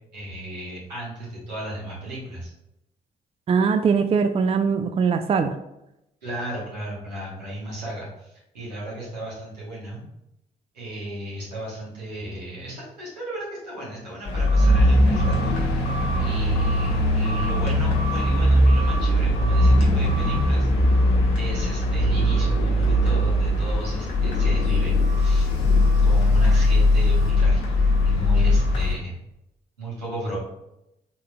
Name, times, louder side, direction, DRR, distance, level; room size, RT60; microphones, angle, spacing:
voice 1, 0.1-2.5 6.2-10.0 10.7-15.5 16.2-20.7 21.4-25.5 26.0-27.8 28.0-29.2 29.8-30.4, right 1 dB, 90° right, -6 dB, 1.2 m, -35 dB
voice 2, 3.5-5.6, right 5 dB, 30° right, 8 dB, 0.4 m, -21 dB
sound 1, 14.3-28.9, left 1 dB, 70° left, 0.8 m, -20 dB
4.4 x 3.7 x 2.2 m, 0.85 s
hypercardioid pair, 40°, 21 cm